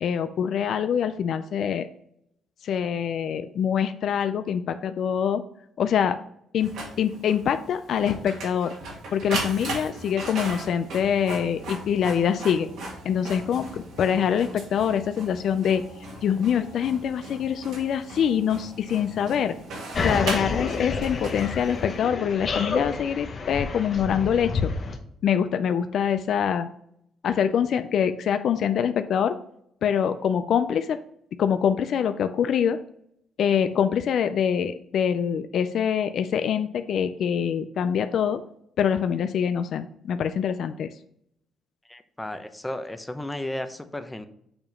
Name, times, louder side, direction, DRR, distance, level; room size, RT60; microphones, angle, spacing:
voice 1, 0.0-1.9 2.6-5.4 5.8-6.2 6.5-8.7 9.1-12.7 13.0-15.8 16.2-19.6 20.0-24.7 25.2-26.7 27.2-29.3 29.8-31.0 31.4-32.8 33.4-38.4 38.8-40.9, left 8 dB, 65° left, 9 dB, 0.3 m, -24 dB
Printer, 6.6-22.0, right 2 dB, 80° right, 1.9 m, -38 dB
sound 1, 19.9-25.0, left 4 dB, 45° left, 0.9 m, -29 dB
voice 2, 41.9-44.3, left 1 dB, 10° left, 8 dB, 0.7 m, -34 dB
6.9 x 2.9 x 5.3 m, 0.72 s
cardioid pair, 90°, 0 cm